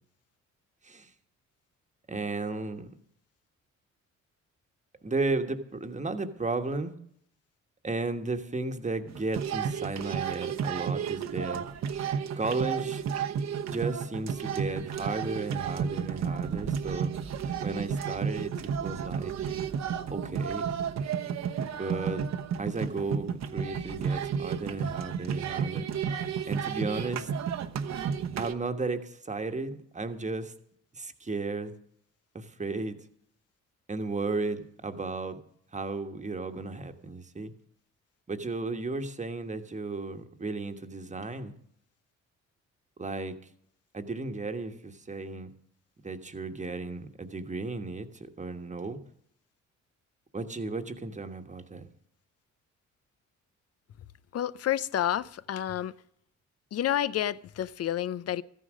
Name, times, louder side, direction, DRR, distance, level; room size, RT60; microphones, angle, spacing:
voice 1, 2.1-2.9 5.0-6.9 7.8-11.7 12.4-17.1 17.6-19.3 20.1-20.7 21.7-22.3 22.6-25.9 26.5-27.3 28.4-30.5 30.9-31.7 32.3-33.0 33.9-35.4 35.7-37.5 38.3-41.5 43.0-43.4 43.9-45.5 46.0-49.0 50.3-51.9, right 3 dB, 25° right, 1.4 m, -34 dB
sound 1, 9.1-28.5, right 7 dB, 60° right, 1.1 m, -32 dB
voice 2, 54.3-55.9 56.7-58.4, left 11 dB, 55° left, 0.6 m, -29 dB
14.0 x 10.0 x 6.4 m
cardioid pair, 90°, 30 cm